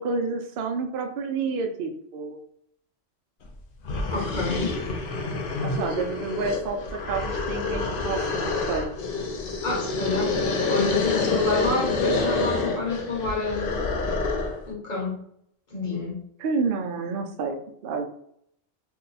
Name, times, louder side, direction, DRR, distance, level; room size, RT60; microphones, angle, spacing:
voice 1, 0.0-2.4 5.6-8.9 16.4-18.0, right 4 dB, 60° right, 3 dB, 0.6 m, -29 dB
sound 1, 3.5-3.6 3.8-14.6, left 3 dB, 60° left, 0.6 m, -28 dB
voice 2, 4.1-4.8 9.6-10.3 10.7-13.8 14.7-15.2 15.7-16.2, left 3 dB, 40° left, -2 dB, 1.1 m, -28 dB
2.7 x 2.2 x 3.9 m, 0.69 s
omnidirectional pair, 1.3 m